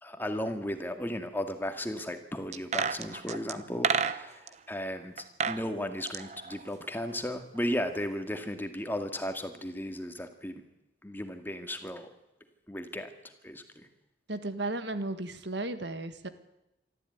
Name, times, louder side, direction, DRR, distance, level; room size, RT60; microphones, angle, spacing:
voice 1, 0.0-10.6 11.0-12.1 12.7-13.1 13.4-13.9, left 1 dB, 10° left, 6 dB, 2.1 m, -35 dB
sound 1, 2.5-4.5 5.2-5.6 5.9-7.3 7.6-7.7, right 5 dB, 35° right, 0.9 m, -31 dB
voice 2, 14.3-16.3, right 2 dB, 65° right, 11 dB, 1.8 m, -34 dB
24.0 x 14.0 x 9.6 m, 0.93 s
head